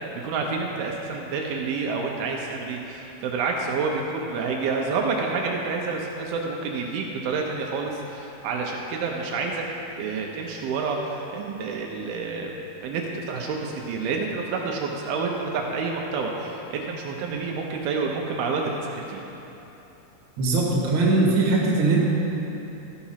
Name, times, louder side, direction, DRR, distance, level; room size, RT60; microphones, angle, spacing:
voice 1, 0.2-9.6 10.0-12.5 12.8-19.2, right 4 dB, 80° right, 0 dB, 2.6 m, -28 dB
voice 2, 20.4-22.0, right 3 dB, 45° right, -4 dB, 2.0 m, -20 dB
13.5 x 5.9 x 5.7 m, 3.0 s
omnidirectional pair, 4.5 m